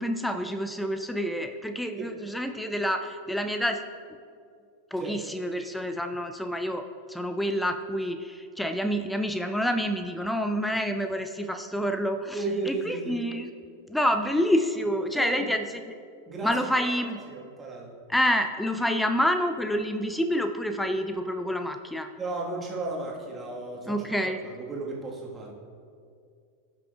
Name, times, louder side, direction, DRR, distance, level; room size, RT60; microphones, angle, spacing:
voice 1, 0.0-3.9 4.9-6.8 7.1-13.5 13.9-15.9 16.4-17.2 18.1-22.1 23.9-24.4, equal, 5° left, 7 dB, 0.4 m, -28 dB
voice 2, 12.3-13.2 15.1-15.5 16.3-16.5 16.8-16.9 17.3-18.0 22.2-23.9 24.4-25.5, right 3 dB, 15° right, -3 dB, 1.5 m, -34 dB
15.0 x 5.8 x 2.4 m, 2.3 s
figure-of-eight pair, 90°, 0 cm